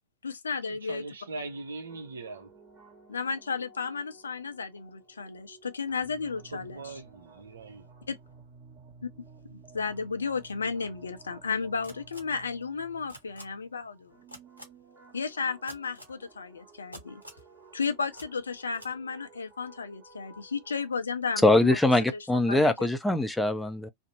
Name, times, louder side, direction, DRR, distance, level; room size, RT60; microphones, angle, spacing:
voice 1, 0.2-1.0 3.1-6.8 8.1-8.2 9.0-9.1 9.5-14.1 15.1-17.2 17.7-21.8 22.1-22.7, left 5 dB, 75° left, 0.4 m, -33 dB
voice 2, 0.8-2.5 6.5-7.9, right 3 dB, 70° right, 0.6 m, -40 dB
sound 1, 1.3-20.9, right 4 dB, 30° right, 1.2 m, -55 dB
sound 2, 11.8-12.2 13.1-13.4 14.3-14.6 15.7-16.1 16.9-17.4 18.1-18.3 18.7-18.9, equal, 90° left, 0.9 m, -45 dB
voice 3, 21.4-23.9, left 1 dB, 5° left, 0.5 m, -23 dB
2.6 x 2.0 x 2.7 m
figure-of-eight pair, 90°, 0 cm